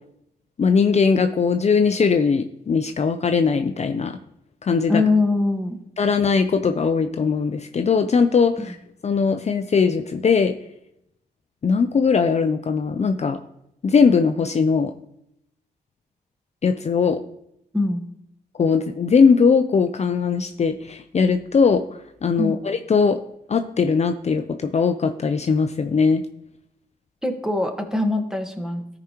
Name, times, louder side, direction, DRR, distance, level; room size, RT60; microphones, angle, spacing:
voice 1, 0.6-4.2 4.6-5.0 6.0-8.8 9.0-10.5 11.6-13.4 13.8-14.9 16.6-17.2 18.6-21.8 22.2-23.2 23.5-26.2, left 5 dB, 45° left, 7 dB, 0.5 m, -20 dB
voice 2, 4.9-5.8 8.6-8.7 17.7-18.0 22.4-22.6 27.2-28.8, left 2 dB, 5° right, 5 dB, 1.3 m, -22 dB
13.0 x 4.9 x 2.9 m, 0.77 s
cardioid pair, 60°, 16 cm